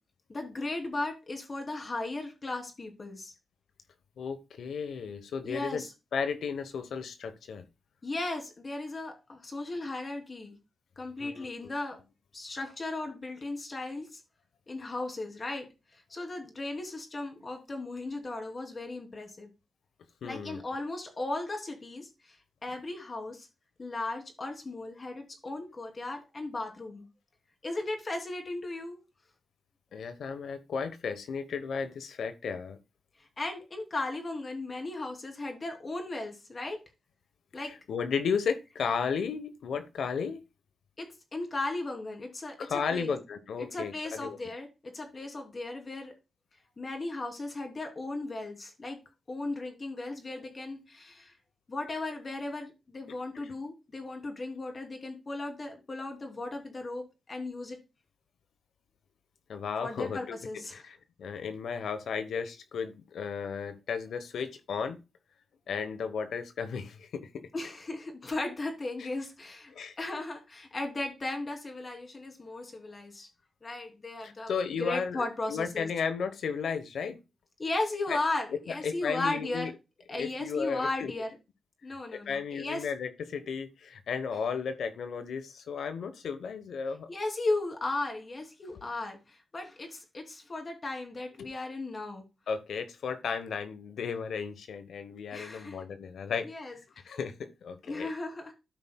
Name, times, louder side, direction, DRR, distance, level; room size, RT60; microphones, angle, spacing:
voice 1, 0.3-3.3 5.4-5.9 8.0-10.6 11.0-12.0 12.3-14.2 14.7-19.5 20.2-22.4 22.6-23.5 23.8-27.0 27.6-29.0 33.4-36.8 37.5-37.7 41.0-42.6 42.9-43.1 43.6-46.1 46.8-49.0 49.3-51.3 51.7-57.8 59.8-60.9 67.5-73.3 73.6-74.5 74.8-75.9 77.6-79.7 80.1-81.3 81.8-82.9 87.1-92.2 95.3-95.8 96.4-96.8 97.9-98.5, left 2 dB, 40° left, 4 dB, 2.8 m, -36 dB
voice 2, 4.2-5.8 6.1-7.7 11.2-11.7 20.2-20.6 29.9-32.8 37.6-40.4 42.6-44.4 53.3-53.5 59.5-60.4 60.7-65.0 65.7-67.5 69.0-69.1 69.7-69.9 74.2-77.2 78.1-78.2 78.7-79.7 80.1-81.1 82.3-87.1 91.4-91.5 92.5-96.5 97.0-98.1, left 6 dB, 85° left, 9 dB, 0.9 m, -34 dB
13.5 x 5.5 x 2.2 m, 0.26 s
cardioid pair, 80°, 0 cm